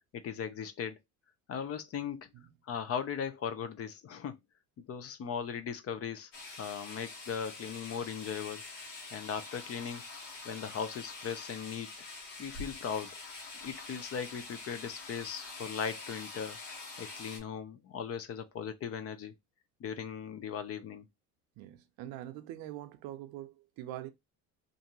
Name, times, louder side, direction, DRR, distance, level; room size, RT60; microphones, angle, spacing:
voice 1, 0.1-1.0 1.5-2.3 2.7-4.4 4.8-6.3 6.6-8.6 9.1-10.0 10.4-11.9 12.4-13.1 13.6-16.6 17.0-19.4 19.8-21.1, left 7 dB, 40° left, 0.5 m, -38 dB
sound 1, 6.3-17.4, left 3 dB, 80° left, 1.4 m, -46 dB
voice 2, 21.6-24.1, right 13 dB, 70° right, 0.6 m, -43 dB
2.6 x 2.5 x 2.8 m
supercardioid pair, 85°, 37 cm